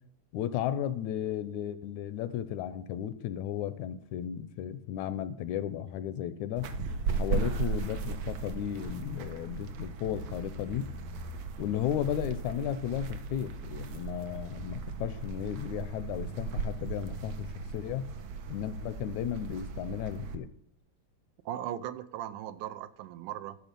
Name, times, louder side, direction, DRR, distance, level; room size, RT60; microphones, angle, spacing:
voice 1, 0.3-6.7 7.1-10.9 11.6-18.1 18.5-20.5, left 10 dB, 80° left, 14 dB, 1.8 m, -34 dB
sound 1, 6.6-20.3, right 5 dB, 65° right, 2.0 m, -37 dB
voice 2, 21.5-23.6, right 11 dB, 85° right, 11 dB, 2.1 m, -38 dB
13.5 x 6.9 x 5.2 m, 0.68 s
omnidirectional pair, 3.6 m